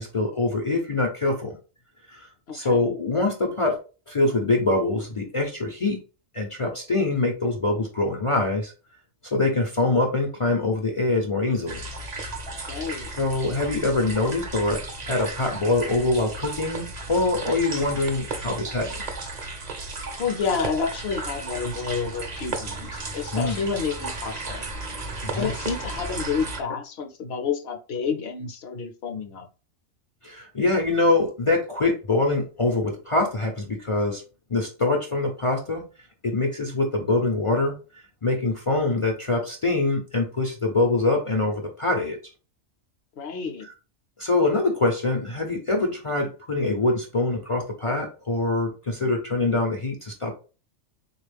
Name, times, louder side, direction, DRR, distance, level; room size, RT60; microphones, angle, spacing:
voice 1, 0.0-1.6 2.1-3.8 4.1-6.0 6.3-8.7 9.2-11.8 13.2-19.2 23.3-23.6 25.2-25.5 30.2-34.2 34.5-35.8 36.2-37.7 38.2-42.2 43.6-43.7 44.2-50.3, left 2 dB, 45° left, 1 dB, 0.4 m, -24 dB
voice 2, 2.5-2.8 12.7-13.1 20.2-24.6 25.3-29.4 43.2-43.7, left 5 dB, 60° left, 4 dB, 0.8 m, -29 dB
sound 1, 11.7-26.6, right 3 dB, 45° right, 0.6 m, -34 dB
3.9 x 2.3 x 3.3 m, 0.34 s
omnidirectional pair, 1.3 m